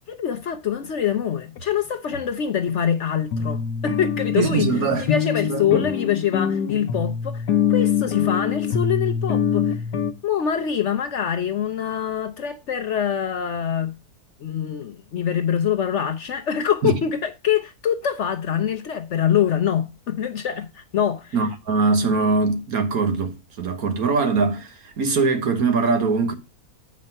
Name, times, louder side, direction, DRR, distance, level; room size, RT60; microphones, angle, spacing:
voice 1, 0.0-4.7 5.0-9.8 10.2-13.9 14.4-21.4, left 9 dB, 60° left, 0.9 m, -24 dB
sound 1, 1.6-1.7 2.1-2.2 2.7-2.8 3.3-10.1, left 8 dB, 85° left, 1.4 m, -24 dB
voice 2, 4.4-5.1 5.4-5.9 16.8-17.0 21.3-26.3, right 4 dB, 65° right, 1.7 m, -22 dB
7.5 x 5.2 x 5.4 m
omnidirectional pair, 1.7 m